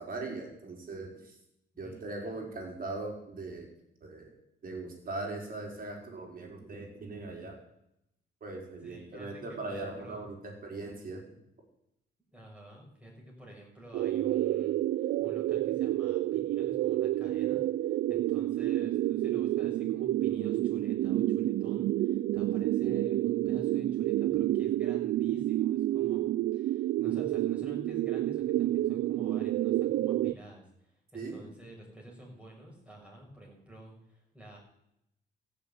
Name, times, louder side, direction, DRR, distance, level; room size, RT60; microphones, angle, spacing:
voice 1, 0.0-1.4 1.8-3.7 4.0-4.3 4.6-7.6 8.4-11.2 31.1-31.5, right 2 dB, 45° right, 1 dB, 4.9 m, -40 dB
voice 2, 1.7-2.4 8.8-10.2 12.3-34.6, equal, 5° right, -2 dB, 6.7 m, -50 dB
sound 1, 13.9-30.3, right 14 dB, 70° right, 0.4 m, -29 dB
14.5 x 7.1 x 9.4 m, 0.80 s
cardioid pair, 90°, 20 cm